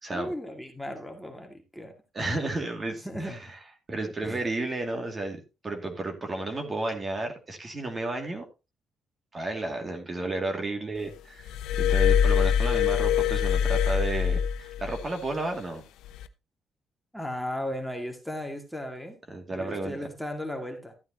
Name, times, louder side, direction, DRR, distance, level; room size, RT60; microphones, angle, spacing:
voice 1, 0.1-1.9 3.0-3.4 4.2-4.4 17.1-19.2 19.5-20.9, left 1 dB, ahead, 3 dB, 2.1 m, -36 dB
voice 2, 2.1-3.4 3.9-8.4 9.3-15.8 19.3-20.0, right 2 dB, 30° right, 4 dB, 2.4 m, -32 dB
Glass, 11.5-15.1 16.0-16.3, left 8 dB, 90° left, 0.7 m, -24 dB
13.0 x 9.0 x 2.9 m, 0.28 s
cardioid pair, 90°, 0 cm